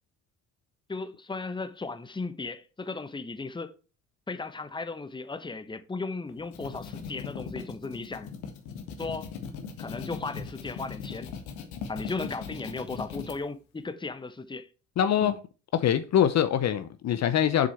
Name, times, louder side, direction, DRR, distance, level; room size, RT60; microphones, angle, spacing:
voice 1, 0.9-3.7 4.3-8.3 9.0-9.3 9.8-11.3 11.9-14.7 15.2-15.3, left 3 dB, 10° left, 1.1 m, -36 dB
sound 1, 6.3-13.4, left 6 dB, 70° left, 1.7 m, -39 dB
voice 2, 15.0-15.4 15.7-17.7, left 10 dB, 45° left, 0.9 m, -24 dB
7.6 x 6.7 x 4.4 m
hypercardioid pair, 55°, 37 cm